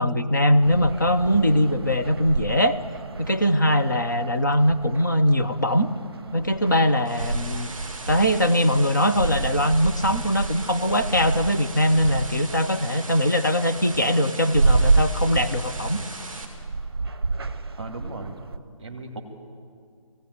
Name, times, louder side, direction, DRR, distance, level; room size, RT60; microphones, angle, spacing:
voice 1, 0.0-2.8 3.2-5.9 6.3-7.7 8.1-16.0, equal, 35° left, 7 dB, 0.8 m, -21 dB
sound 1, 0.6-18.6, right 3 dB, 45° right, 0.8 m, -29 dB
sound 2, 6.7-16.4, right 2 dB, ahead, 1.7 m, -39 dB
voice 2, 17.8-18.3 18.8-19.2, right 2 dB, 15° right, 4 dB, 1.9 m, -36 dB
19.5 x 16.0 x 9.4 m, 2.1 s
figure-of-eight pair, 180°, 18 cm